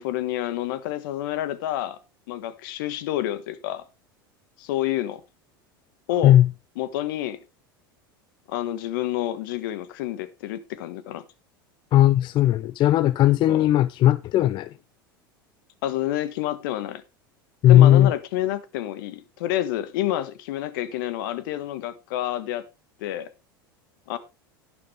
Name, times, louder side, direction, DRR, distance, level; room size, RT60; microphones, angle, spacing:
voice 1, 0.0-2.0 2.3-3.8 4.6-5.2 6.1-6.4 6.8-7.4 8.5-11.2 13.5-13.6 15.8-17.0 17.7-22.6 23.0-23.3 24.1-24.2, left 13 dB, 65° left, 1.4 m, -28 dB
voice 2, 11.9-14.7 17.6-18.1, left 12 dB, 40° left, 0.5 m, -17 dB
11.5 x 9.8 x 3.4 m
hypercardioid pair, 85°, 12 cm